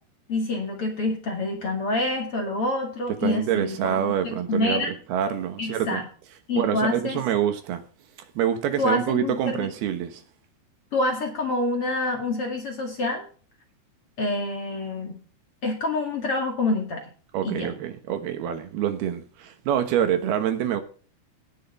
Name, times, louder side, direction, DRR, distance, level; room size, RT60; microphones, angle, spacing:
voice 1, 0.3-4.9 5.6-6.1 6.5-7.2 8.8-9.7 10.9-13.2 14.2-15.2 15.6-17.0 17.4-17.7, left 2 dB, 40° left, 2.2 m, -27 dB
voice 2, 3.2-6.0 6.6-7.8 8.4-10.2 17.3-20.8, right 9 dB, 70° right, 2.9 m, -26 dB
18.5 x 6.3 x 4.5 m
omnidirectional pair, 5.5 m